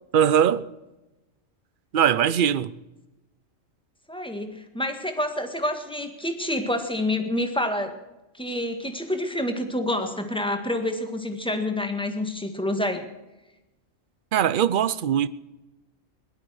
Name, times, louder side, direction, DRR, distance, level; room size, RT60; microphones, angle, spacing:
voice 1, 0.1-0.7 1.9-2.7 14.3-15.3, right 9 dB, 50° right, 0.6 m, -21 dB
voice 2, 4.1-7.9 8.3-13.1, left 1 dB, 5° left, 1.7 m, -28 dB
18.5 x 12.0 x 6.4 m
omnidirectional pair, 1.4 m